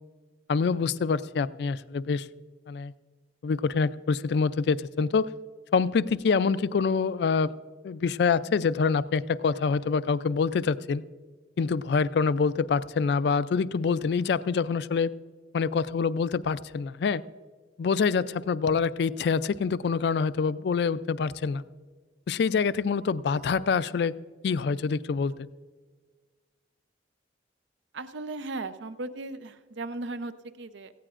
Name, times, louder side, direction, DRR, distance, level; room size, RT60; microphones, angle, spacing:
voice 1, 0.5-2.3 2.7-2.9 3.4-5.3 5.7-7.5 7.8-11.0 11.6-15.1 15.5-17.2 17.8-21.6 22.3-24.2 24.4-25.3, left 5 dB, 60° left, 17 dB, 0.3 m, -26 dB
voice 2, 27.9-30.9, right 2 dB, 75° right, 12 dB, 0.6 m, -37 dB
17.5 x 15.5 x 2.5 m, 1.5 s
head